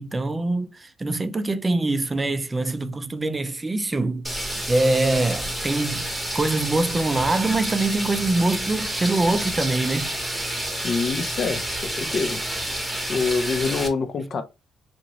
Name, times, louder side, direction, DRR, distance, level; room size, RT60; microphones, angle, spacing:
voice 1, 0.0-4.3 4.7-6.1 6.3-10.1, right 2 dB, 25° right, 0.4 m, -24 dB
sound 1, 4.2-13.9, right 1 dB, ahead, 0.9 m, -29 dB
voice 2, 10.8-12.6 13.1-14.4, left 4 dB, 55° left, 0.5 m, -26 dB
2.9 x 2.5 x 2.8 m
cardioid pair, 90°, 0 cm